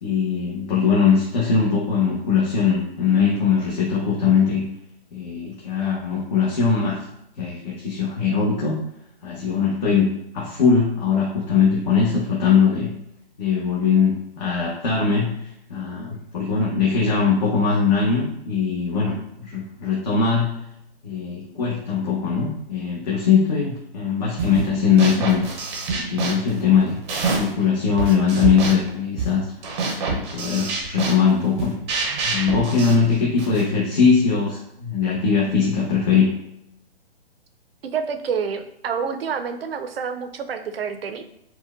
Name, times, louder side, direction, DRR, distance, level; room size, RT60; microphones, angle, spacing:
voice 1, 0.0-4.7 5.1-7.1 7.4-8.8 9.2-10.1 10.3-12.9 13.4-20.7 21.0-25.5 25.9-27.0 27.4-29.5 30.1-31.7 32.2-36.3, left 6 dB, 45° left, -5 dB, 0.8 m, -21 dB
sound 1, 24.4-24.7 25.0-27.6 28.0-33.7, right 3 dB, 25° right, 0.6 m, -27 dB
voice 2, 37.8-41.2, right 6 dB, 70° right, 7 dB, 0.5 m, -28 dB
4.4 x 2.2 x 2.4 m, 0.80 s
hypercardioid pair, 140°, 31 cm